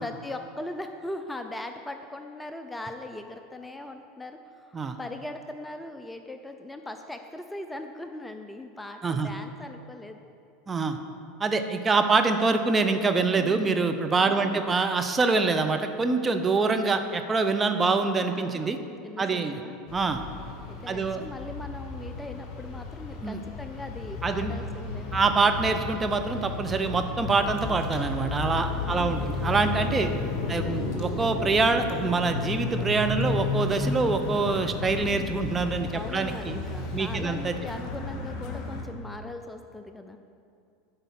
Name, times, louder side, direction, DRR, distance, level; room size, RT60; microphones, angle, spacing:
voice 1, 0.0-10.2 13.4-13.8 14.2-14.7 16.6-17.0 18.3-18.7 19.0-19.8 20.7-25.2 28.8-29.3 30.4-30.8 35.9-40.2, left 2 dB, 10° left, 6 dB, 0.6 m, -40 dB
voice 2, 10.7-11.0 11.4-18.8 19.2-19.6 19.9-20.2 20.9-21.3 23.2-23.4 24.2-24.5 25.1-30.1 30.5-36.6 36.9-37.5, right 4 dB, 20° right, 7 dB, 0.8 m, -25 dB
sound 1, 19.9-38.8, left 3 dB, 45° left, 1.6 m, -33 dB
10.5 x 5.2 x 7.5 m, 2.4 s
hypercardioid pair, 90°, 0 cm